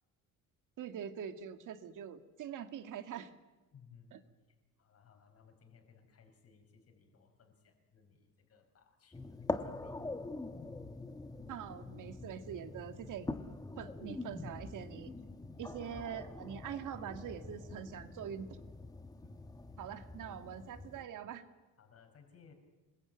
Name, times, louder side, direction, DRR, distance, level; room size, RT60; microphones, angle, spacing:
voice 1, 0.8-3.3 4.1-4.2 11.5-13.3 13.8-15.1 15.6-18.6 19.8-21.4, right 8 dB, 65° right, 8 dB, 2.1 m, -44 dB
voice 2, 3.7-4.1 4.5-10.0 19.2-19.4 19.7-20.0 21.8-22.5, left 6 dB, 45° left, 5 dB, 5.4 m, -62 dB
sound 1, 9.1-21.0, left 2 dB, 10° left, 1.4 m, -44 dB
27.0 x 21.5 x 9.2 m, 1.2 s
cardioid pair, 140°, 34 cm